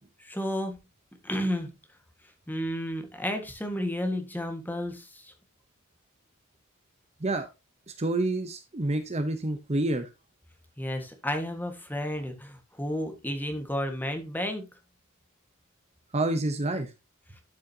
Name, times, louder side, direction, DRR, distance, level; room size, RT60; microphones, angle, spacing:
voice 1, 0.2-0.8 1.2-1.7 2.5-5.3 10.8-14.6, equal, 10° left, 5 dB, 1.5 m, -32 dB
voice 2, 7.9-10.1 16.1-16.9, right 2 dB, 30° right, 8 dB, 0.8 m, -28 dB
11.5 x 6.3 x 2.8 m, 0.25 s
head